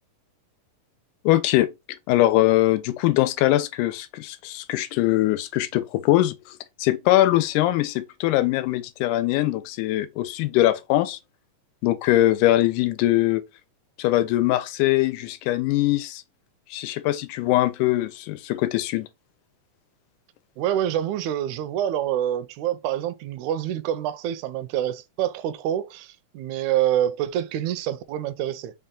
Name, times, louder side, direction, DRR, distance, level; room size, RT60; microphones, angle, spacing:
voice 1, 1.3-11.2 11.8-13.4 14.0-16.2 16.7-19.1, left 15 dB, 85° left, 2.1 m, -22 dB
voice 2, 20.6-28.7, right 11 dB, 80° right, 1.8 m, -26 dB
5.2 x 2.2 x 3.6 m
omnidirectional pair, 3.6 m